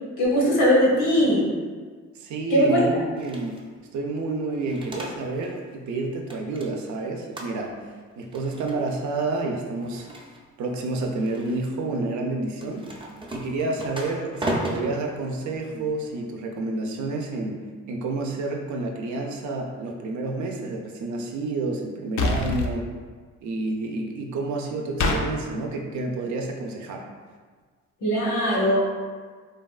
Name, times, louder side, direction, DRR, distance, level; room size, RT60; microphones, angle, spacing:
voice 1, 0.2-1.5 2.5-2.9 28.0-28.8, equal, 90° left, -3 dB, 0.9 m, -20 dB
voice 2, 2.2-3.6 3.9-7.7 8.2-10.1 10.6-12.9 13.3-17.6 17.9-22.9 23.4-27.0, right 2 dB, 70° right, 2 dB, 0.5 m, -29 dB
sound 1, 3.2-3.7 4.5-5.6 5.9-7.0 7.3-7.9 8.2-9.0 9.7-10.7 11.2-11.7 12.5-16.2, right 1 dB, 15° right, 0.5 m, -36 dB
sound 2, 22.2-22.7 25.0-25.2, left 3 dB, 65° left, 0.5 m, -23 dB
3.3 x 2.3 x 2.3 m, 1.5 s
cardioid pair, 90°, 30 cm